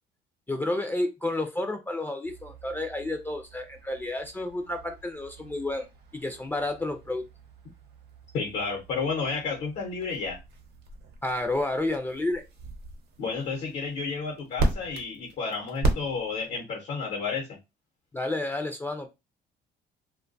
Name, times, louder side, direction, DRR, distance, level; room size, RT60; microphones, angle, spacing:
voice 1, 0.5-5.9 6.1-7.3 11.2-12.4 18.1-19.1, left 2 dB, 10° left, 0.3 m, -30 dB
sound 1, 2.2-16.6, right 2 dB, 75° right, 0.7 m, -36 dB
voice 2, 8.3-10.4 13.2-17.6, left 4 dB, 80° left, 0.8 m, -31 dB
2.5 x 2.2 x 2.5 m
cardioid pair, 110°, 17 cm